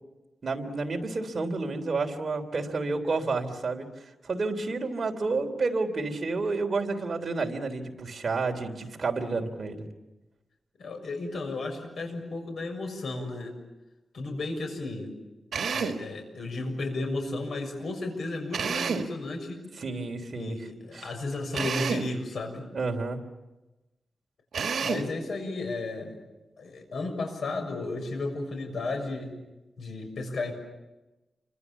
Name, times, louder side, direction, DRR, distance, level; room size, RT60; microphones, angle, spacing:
voice 1, 0.4-9.9 19.8-20.6 20.9-21.1 22.7-23.2, right 3 dB, 45° right, 3 dB, 3.4 m, -30 dB
voice 2, 10.8-13.6 14.1-15.1 15.7-19.6 20.3-22.7 24.8-26.2 26.6-29.3 29.8-30.5, left 2 dB, 75° left, 4 dB, 6.7 m, -34 dB
Drill, 15.5-16.1 18.5-19.2 21.5-22.2 24.5-25.2, right 5 dB, 85° right, 1.7 m, -29 dB
29.0 x 25.5 x 7.3 m, 1.1 s
wide cardioid pair, 140°, 0 cm